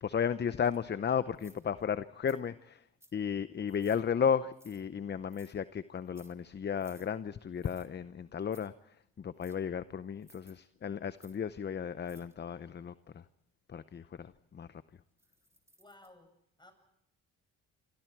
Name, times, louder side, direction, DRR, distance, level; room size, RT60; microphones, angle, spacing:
voice 1, 0.0-2.8 3.1-13.2 13.7-14.8, left 7 dB, 35° left, 14 dB, 0.7 m, -34 dB
sound 1, 0.6-0.8 1.3-1.8 2.3-2.4 3.0-3.2 3.7-4.0 4.5-4.8 5.3-5.5 6.0-6.3 6.8-7.1 7.6-7.9 8.4-8.7 9.4-9.6 10.2-10.5 11.2-11.4 12.0-12.3 15.2-16.1, right 1 dB, 10° right, 3.2 m, -61 dB
voice 2, 15.8-16.3 16.6-16.7, left 2 dB, 15° left, 6 dB, 7.5 m, -56 dB
28.0 x 25.0 x 4.6 m, 0.78 s
cardioid pair, 90°, 30 cm